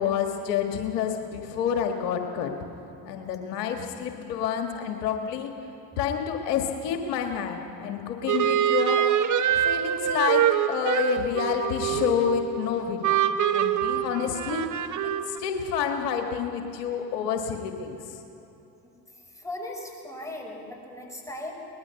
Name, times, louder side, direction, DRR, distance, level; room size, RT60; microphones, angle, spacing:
voice 1, 0.0-2.5 3.0-5.5 6.0-9.0 9.5-13.2 13.5-14.7 15.0-18.2, left 8 dB, 70° left, 4 dB, 1.7 m, -28 dB
sound 1, 8.3-12.6 13.0-15.4, right 10 dB, 40° right, 1.0 m, -25 dB
voice 2, 19.3-21.5, left 1 dB, 5° left, 0 dB, 5.4 m, -37 dB
23.0 x 20.0 x 5.8 m, 2.9 s
hypercardioid pair, 65°, 48 cm